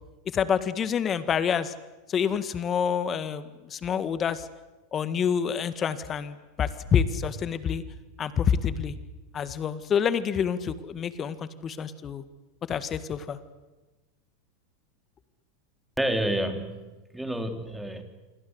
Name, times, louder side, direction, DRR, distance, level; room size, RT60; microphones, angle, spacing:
voice 1, 0.2-1.7 2.1-4.5 4.9-7.8 8.2-9.0 9.3-12.2 12.7-13.4, left 7 dB, 30° left, 13 dB, 1.8 m, -27 dB
voice 2, 16.0-18.0, right 1 dB, 5° right, 7 dB, 3.6 m, -29 dB
27.0 x 24.0 x 8.1 m, 1.1 s
hypercardioid pair, 100°, 0 cm